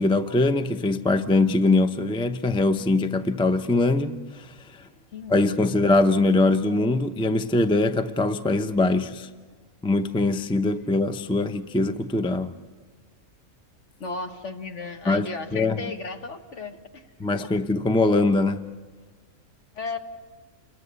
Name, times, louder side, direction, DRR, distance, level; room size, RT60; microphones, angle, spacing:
voice 1, 0.0-4.5 5.3-9.3 9.8-12.6 15.1-15.8 17.2-18.7, left 2 dB, 5° left, 0.4 m, -22 dB
voice 2, 5.1-5.9 14.0-17.0 17.4-17.5 19.7-20.0, left 4 dB, 55° left, 1.7 m, -35 dB
28.5 x 21.5 x 7.0 m
omnidirectional pair, 1.5 m